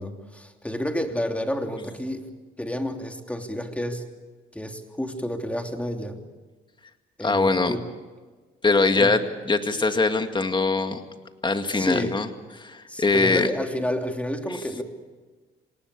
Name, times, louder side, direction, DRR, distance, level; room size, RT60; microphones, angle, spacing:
voice 1, 0.0-2.3 2.6-4.0 4.5-6.2 7.2-7.8 9.0-9.2 11.7-12.2 12.9-14.8, equal, 5° left, 4 dB, 3.0 m, -30 dB
voice 2, 7.2-7.8 8.6-11.0 11.4-12.3 12.6-13.5, left 3 dB, 25° left, 7 dB, 2.1 m, -22 dB
27.0 x 18.5 x 8.4 m, 1.3 s
cardioid pair, 90°, 20 cm